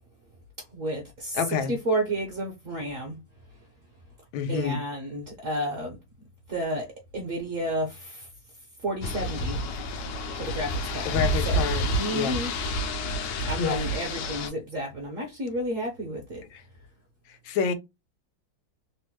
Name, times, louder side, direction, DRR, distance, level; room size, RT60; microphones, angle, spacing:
voice 1, 0.7-1.4 1.7-3.2 4.5-6.0 6.5-6.9 7.1-8.3 8.8-9.6 10.4-11.1 11.5-12.5 13.4-16.4, right 1 dB, 55° right, 0.9 m, -31 dB
voice 2, 1.3-1.8 4.3-4.8 11.0-11.9 12.1-12.4 13.6-13.9 16.5-16.6 17.3-17.7, left 7 dB, 90° left, 1.4 m, -28 dB
sound 1, 9.0-14.5, equal, 75° left, 1.2 m, -29 dB
3.4 x 2.1 x 3.0 m
omnidirectional pair, 2.1 m